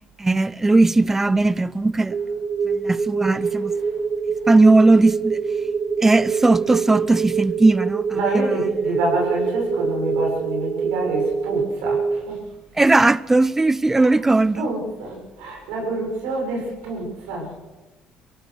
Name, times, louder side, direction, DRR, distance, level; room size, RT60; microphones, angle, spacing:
voice 1, 0.2-2.2 2.7-3.7 4.5-5.4 6.0-8.5 12.8-14.7, right 2 dB, 15° right, 0.7 m, -18 dB
sound 1, 2.1-12.2, right 5 dB, 45° right, 1.3 m, -25 dB
voice 2, 3.3-3.9 8.1-12.4 13.0-13.1 14.0-14.1 14.5-17.6, right 2 dB, 85° right, 7.2 m, -28 dB
24.0 x 16.5 x 6.5 m
supercardioid pair, 85°, 2 cm